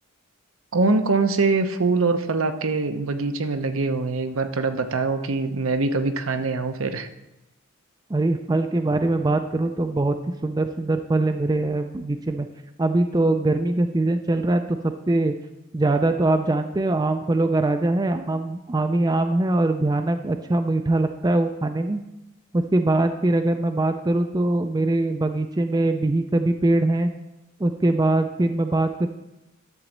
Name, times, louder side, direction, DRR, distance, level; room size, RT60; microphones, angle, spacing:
voice 1, 0.7-7.1 8.9-9.0, right 3 dB, 75° right, 8 dB, 0.8 m, -23 dB
voice 2, 8.1-10.2 10.4-12.5 12.8-15.3 15.7-22.0 22.5-27.1 27.6-29.1, right 2 dB, 20° right, 7 dB, 0.4 m, -22 dB
11.0 x 4.0 x 7.2 m, 0.94 s
head